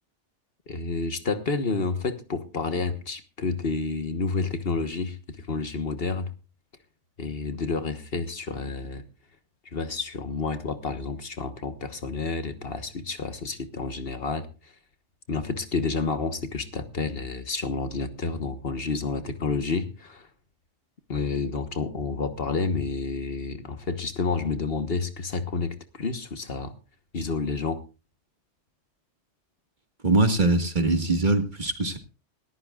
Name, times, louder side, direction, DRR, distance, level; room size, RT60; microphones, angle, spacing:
voice 1, 0.7-6.3 7.2-9.1 9.6-14.8 15.3-20.3 21.1-26.8 27.1-27.8, left 4 dB, 55° left, 9 dB, 1.4 m, -30 dB
voice 2, 30.0-32.0, right 2 dB, 40° right, 6 dB, 1.8 m, -22 dB
21.0 x 14.0 x 2.4 m, 0.31 s
omnidirectional pair, 1.2 m